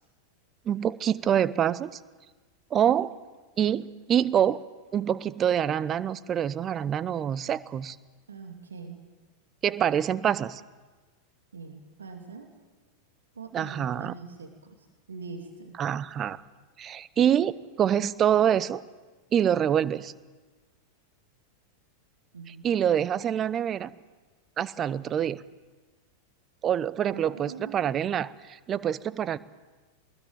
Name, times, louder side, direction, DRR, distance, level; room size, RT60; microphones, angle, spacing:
voice 1, 0.7-1.9 2.7-3.1 3.6-4.6 4.9-8.0 9.6-10.6 13.5-14.1 15.8-16.4 16.8-18.8 19.3-20.1 22.5-23.9 24.6-25.4 26.6-29.4, right 9 dB, 25° right, 18 dB, 0.9 m, -26 dB
voice 2, 8.3-9.0 11.5-12.5 13.4-14.8 15.1-15.8 22.3-22.6 27.1-28.0, right 5 dB, 70° right, 4 dB, 2.6 m, -42 dB
22.5 x 20.5 x 9.3 m, 1.3 s
figure-of-eight pair, 90°, 0 cm